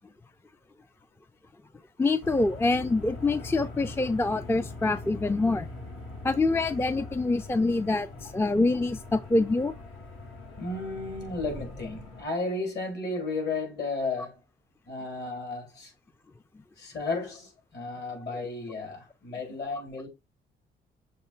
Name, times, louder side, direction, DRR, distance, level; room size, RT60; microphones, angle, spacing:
voice 1, 2.0-5.7 6.2-8.1 8.3-9.7 18.3-18.4, left 2 dB, 10° left, 0.4 m, -25 dB
sound 1, 2.2-12.2, left 2 dB, 80° left, 2.8 m, -42 dB
voice 2, 10.6-14.4 14.9-15.9 16.8-20.1, left 3 dB, 60° left, 3.7 m, -33 dB
6.6 x 3.3 x 4.4 m
cardioid pair, 90°, 20 cm